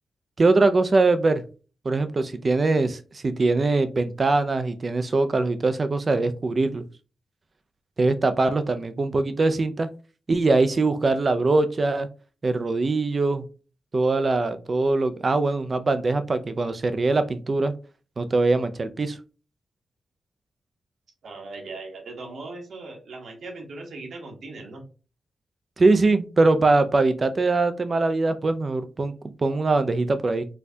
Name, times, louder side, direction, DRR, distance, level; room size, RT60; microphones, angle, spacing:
voice 1, 0.4-1.4 1.8-6.8 8.0-9.9 10.3-12.1 12.4-13.4 13.9-17.7 18.2-19.2 25.8-30.5, right 3 dB, 45° right, 10 dB, 0.4 m, -22 dB
voice 2, 21.2-24.8, right 3 dB, 75° right, 1 dB, 1.0 m, -39 dB
4.3 x 2.3 x 2.7 m, 0.35 s
cardioid pair, 55°, 0 cm